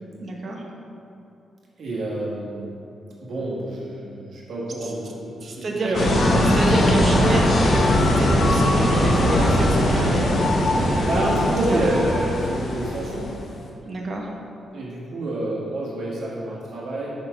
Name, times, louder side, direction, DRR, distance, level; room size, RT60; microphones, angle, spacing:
voice 1, 0.2-0.6 4.8-4.9 5.4-6.1 6.5-12.1 13.8-14.3, right 2 dB, 45° right, 0 dB, 0.9 m, -29 dB
voice 2, 1.8-2.7 3.2-6.1 11.0-13.3 14.7-17.1, right 1 dB, 65° right, -5 dB, 1.5 m, -28 dB
sound 1, 5.9-13.4, left 1 dB, 55° left, 1.0 m, -20 dB
5.2 x 4.3 x 5.7 m, 2.6 s
cardioid pair, 120°, 0 cm